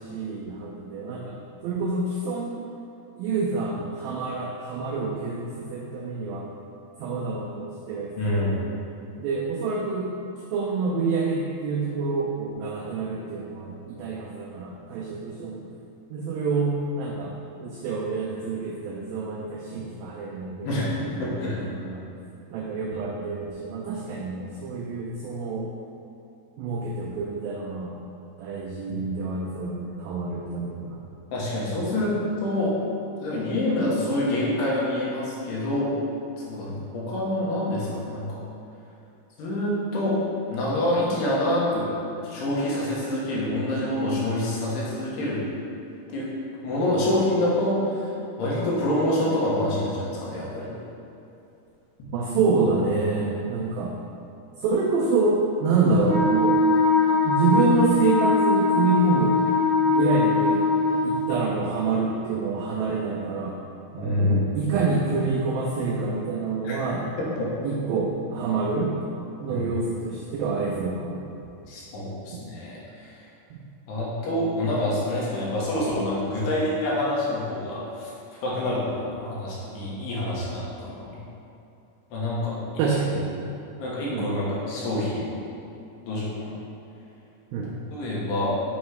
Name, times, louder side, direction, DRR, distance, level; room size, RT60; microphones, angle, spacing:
voice 1, 0.0-2.6 3.2-6.5 7.0-8.6 9.2-10.1 10.5-15.7 16.1-17.3 17.6-20.9 21.3-22.0 22.5-25.7 26.6-27.9 28.4-31.0 52.1-53.9 54.6-56.6 57.2-59.4 59.9-60.6 61.0-63.6 63.9-67.1 67.6-69.0 69.4-71.3 72.3-72.4 73.5-73.6 82.8-83.4 84.1-84.3 87.5-87.7, right 4 dB, 85° right, -3 dB, 2.0 m, -27 dB
voice 2, 8.2-8.6 20.6-21.6 22.9-23.0 28.9-29.0 31.3-32.8 33.2-35.9 36.4-38.3 39.4-40.2 40.5-41.9 42.2-45.4 46.1-46.3 46.6-48.1 48.4-50.7 64.0-64.5 66.6-66.8 67.2-67.5 69.5-69.7 71.7-73.1 73.9-78.1 78.4-81.2 82.1-82.6 83.8-85.3 86.0-86.6 87.9-88.5, left 1 dB, 80° left, -6 dB, 3.3 m, -26 dB
Wind instrument woodwind instrument, 56.0-61.2, left 3 dB, 60° right, 2.2 m, -21 dB
8.0 x 3.1 x 4.7 m, 2.7 s
omnidirectional pair, 4.8 m